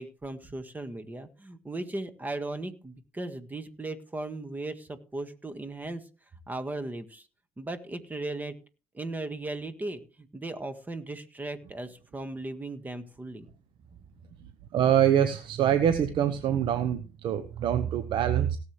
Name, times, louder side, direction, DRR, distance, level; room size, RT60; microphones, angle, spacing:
voice 1, 0.0-6.0 6.5-7.3 7.6-8.6 8.9-13.5, right 2 dB, 20° right, 10 dB, 1.7 m, -37 dB
voice 2, 14.7-18.6, right 10 dB, 60° right, 10 dB, 1.0 m, -25 dB
17.5 x 7.7 x 3.3 m, 0.35 s
hypercardioid pair, 60°, 9 cm